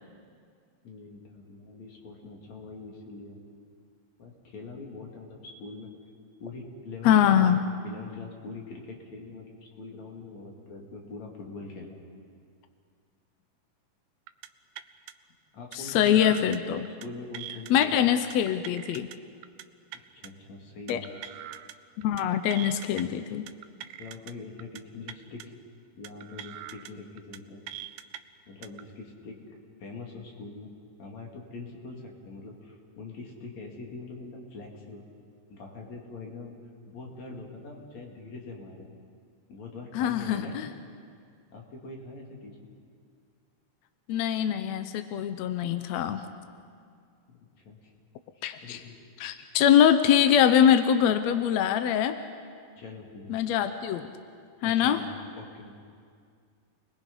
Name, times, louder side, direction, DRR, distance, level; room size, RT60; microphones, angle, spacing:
voice 1, 0.8-3.4 4.2-5.9 6.4-7.5 7.8-9.5 9.8-12.0 15.5-16.4 16.9-18.0 19.9-21.0 23.9-25.5 26.0-27.7 28.5-30.7 31.0-35.0 35.5-36.6 36.9-38.9 39.5-40.6 41.5-42.6 47.3-47.4 47.6-47.9 48.4-49.0 52.8-53.4 54.7-55.1 55.4-55.7, left 3 dB, 55° left, 0 dB, 3.7 m, -43 dB
voice 2, 7.0-7.6 15.7-16.9 17.7-19.1 20.9-21.0 22.0-23.5 39.9-40.7 44.1-46.3 48.4-48.8 49.2-52.2 53.3-54.1 54.6-55.0, left 9 dB, 75° left, 9 dB, 1.6 m, -23 dB
sound 1, 14.3-14.5 14.8-15.1 15.7-16.6 16.9-17.1 17.3-17.9 18.3-19.2 19.4-19.6 19.9-20.3 20.9-21.7 22.0-22.2 22.5-23.0 23.5-24.3 24.6-24.8 25.1-25.4 26.0-26.9 27.2-27.4 27.7-28.2 28.6-28.8, right 12 dB, 75° right, 1.8 m, -42 dB
29.0 x 21.0 x 5.4 m, 2.2 s
omnidirectional pair, 3.9 m